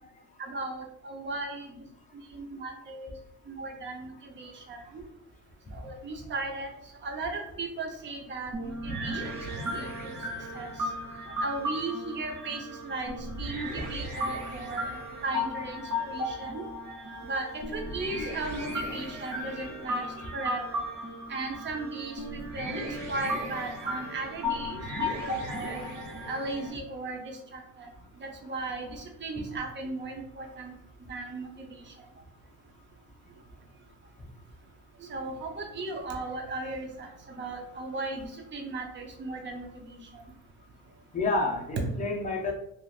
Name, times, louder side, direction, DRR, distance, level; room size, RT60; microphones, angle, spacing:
voice 1, 0.4-1.8 2.3-3.1 3.5-5.0 5.7-6.7 7.0-9.2 9.7-10.2 10.5-10.7 11.4-13.1 13.4-16.6 17.2-17.4 17.7-20.1 20.3-20.8 21.3-25.8 26.3-27.9 28.2-30.7 31.1-31.8 35.0-40.0, right 3 dB, 30° right, 2 dB, 0.5 m, -36 dB
sound 1, 8.5-26.7, left 1 dB, 50° right, 1.0 m, -35 dB
voice 2, 19.5-19.8 20.2-20.3 41.1-42.5, left 3 dB, 20° left, 0 dB, 0.5 m, -30 dB
3.4 x 2.4 x 2.3 m, 0.76 s
cardioid pair, 150°, 37 cm